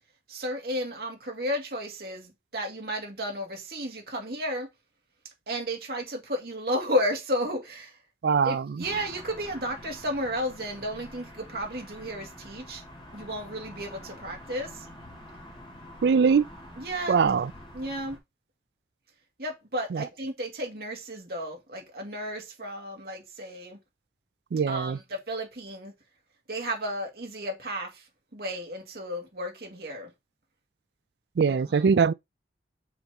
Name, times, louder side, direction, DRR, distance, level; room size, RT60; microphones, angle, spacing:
voice 1, 0.3-4.7 5.5-7.9 8.4-12.8 13.1-14.7 16.8-17.2 17.7-18.2 19.4-23.8 24.7-25.9 26.5-27.9 28.3-30.1 31.5-31.9, equal, 60° right, 2.1 m, -33 dB
voice 2, 8.2-8.8 16.0-16.5 17.1-17.5 19.9-20.1 24.5-25.0 31.4-32.1, right 6 dB, 75° right, 0.4 m, -22 dB
sound 1, 8.8-18.2, left 1 dB, 30° left, 2.2 m, -46 dB
6.9 x 4.2 x 3.5 m
head